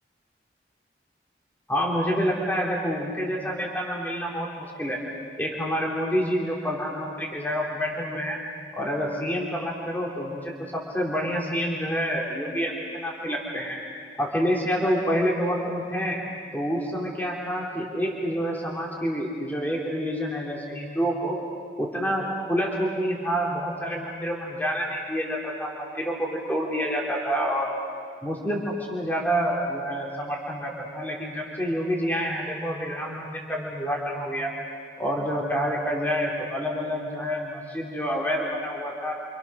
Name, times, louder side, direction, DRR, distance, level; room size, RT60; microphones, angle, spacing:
voice 1, 1.7-5.0 5.4-8.4 8.7-13.8 14.2-16.2 16.5-21.4 21.8-27.8 28.2-34.5 35.0-39.1, equal, 10° left, -2 dB, 3.6 m, -28 dB
30.0 x 27.0 x 6.5 m, 2.1 s
head